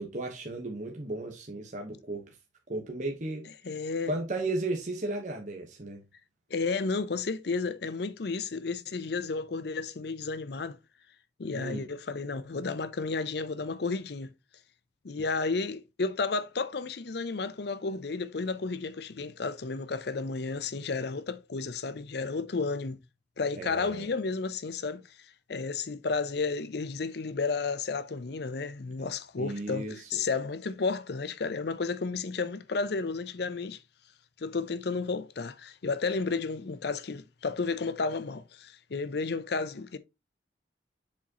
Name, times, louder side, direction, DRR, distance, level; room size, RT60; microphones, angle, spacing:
voice 1, 0.0-2.3 2.7-3.5 4.1-6.0 11.5-11.9 23.5-24.1 29.4-30.1, right 2 dB, 40° right, 1.1 m, -34 dB
voice 2, 3.6-4.1 6.5-10.8 11.4-14.3 15.0-23.0 23.4-25.0 25.5-33.8 34.4-40.0, left 4 dB, 60° left, 0.6 m, -32 dB
7.1 x 4.8 x 2.9 m
head